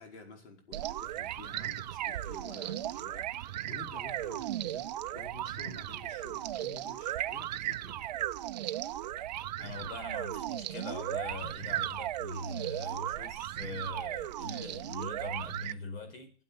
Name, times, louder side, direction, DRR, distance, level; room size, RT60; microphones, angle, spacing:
voice 1, 0.0-8.1, left 3 dB, 90° left, 5.1 m, -50 dB
sound 1, 0.7-15.7, right 13 dB, 40° right, 0.6 m, -36 dB
voice 2, 9.6-16.3, left 2 dB, 65° left, 5.0 m, -42 dB
12.5 x 7.9 x 8.6 m
supercardioid pair, 175°, 33 cm